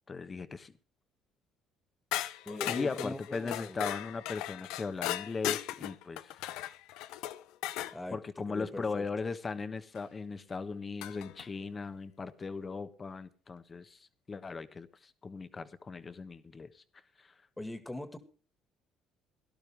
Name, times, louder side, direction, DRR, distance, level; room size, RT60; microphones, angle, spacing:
voice 1, 0.1-0.8 2.6-6.4 8.1-16.8 17.2-17.3, left 4 dB, 30° left, 11 dB, 1.2 m, -38 dB
sound 1, 2.1-8.0 9.9-10.0 11.0-11.5, left 14 dB, 80° left, 0.6 m, -37 dB
voice 2, 2.5-3.8 7.9-8.2 8.5-9.0 17.6-18.2, left 1 dB, 15° left, 10 dB, 2.1 m, -40 dB
17.5 x 12.0 x 3.5 m, 0.38 s
supercardioid pair, 85°, 0 cm